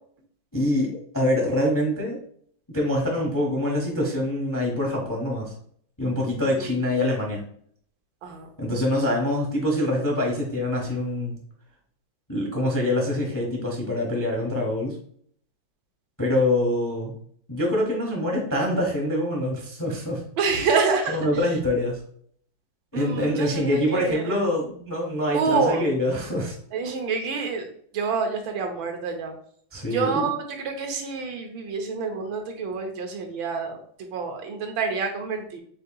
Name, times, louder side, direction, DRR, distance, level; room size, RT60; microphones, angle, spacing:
voice 1, 0.5-2.2 2.7-5.5 6.0-7.5 8.6-11.4 12.3-14.9 16.2-17.1 17.5-20.2 21.1-22.0 22.9-26.5 29.7-30.3, left 1 dB, 20° left, -2 dB, 0.5 m, -25 dB
voice 2, 20.4-21.2 22.9-24.4 25.3-25.9 26.7-29.3 29.9-33.8 34.1-35.6, right 4 dB, 80° right, 4 dB, 1.6 m, -27 dB
7.6 x 2.8 x 2.3 m, 0.62 s
omnidirectional pair, 2.1 m